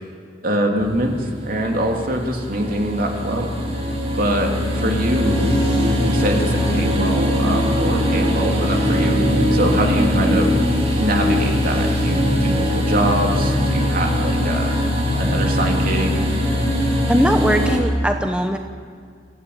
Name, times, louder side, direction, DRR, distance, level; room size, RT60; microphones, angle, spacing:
voice 1, 0.4-3.5 4.2-9.2 9.5-10.6 11.0-14.8 15.2-16.2, right 1 dB, 50° right, 2 dB, 3.0 m, -23 dB
sound 1, 0.8-17.8, left 1 dB, 35° right, 5.5 m, -20 dB
voice 2, 17.1-18.6, equal, 5° right, 5 dB, 0.9 m, -20 dB
25.0 x 15.5 x 8.6 m, 2.2 s
head